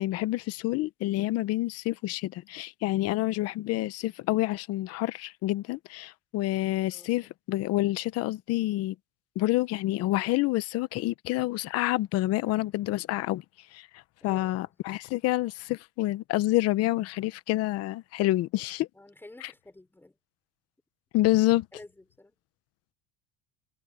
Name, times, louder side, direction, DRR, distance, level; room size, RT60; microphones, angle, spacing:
voice 1, 0.0-8.9 9.4-13.4 13.7-13.9 14.2-18.9 21.1-21.7, left 17 dB, 50° left, 1.0 m, -28 dB
voice 2, 14.2-14.8 18.9-20.2 21.7-22.4, left 2 dB, 5° left, 6.1 m, -50 dB
cardioid pair, 150°, 31 cm